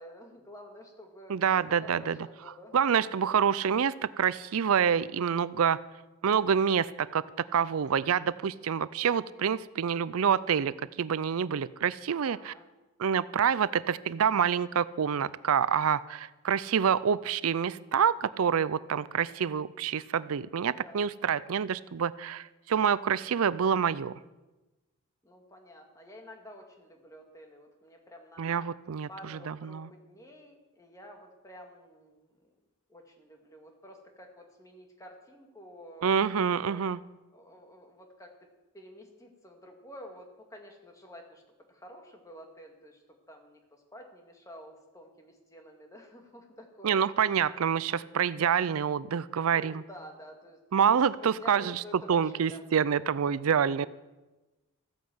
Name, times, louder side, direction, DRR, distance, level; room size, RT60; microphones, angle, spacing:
voice 1, 0.0-2.8 9.0-9.4 12.2-12.7 13.6-13.7 17.2-17.3 20.5-21.0 25.2-28.7 29.1-32.5 32.9-36.8 37.3-38.5 38.7-41.4 41.7-47.1 49.4-50.6 50.9-52.6 53.8-53.9, equal, 15° left, 3 dB, 2.1 m, -50 dB
voice 2, 1.3-2.3 2.7-5.8 6.2-7.2 7.5-12.5 13.0-24.1 28.4-29.9 36.0-37.0 46.8-49.8 50.7-51.8 52.1-53.9, right 7 dB, 80° right, 18 dB, 0.5 m, -27 dB
15.0 x 9.4 x 7.8 m, 1.1 s
head